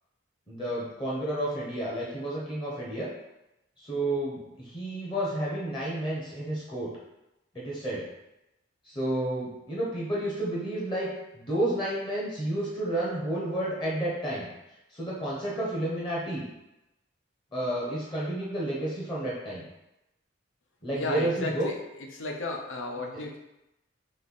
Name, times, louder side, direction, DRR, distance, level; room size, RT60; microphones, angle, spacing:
voice 1, 0.5-3.1 3.8-6.9 7.5-8.0 8.9-11.1 11.3-14.5 14.9-16.4 17.5-19.6 20.8-21.7, right 1 dB, 25° left, -5 dB, 0.9 m, -31 dB
voice 2, 21.0-21.8 22.1-23.4, left 2 dB, 80° left, 1 dB, 0.7 m, -33 dB
3.2 x 3.1 x 4.1 m, 0.92 s
head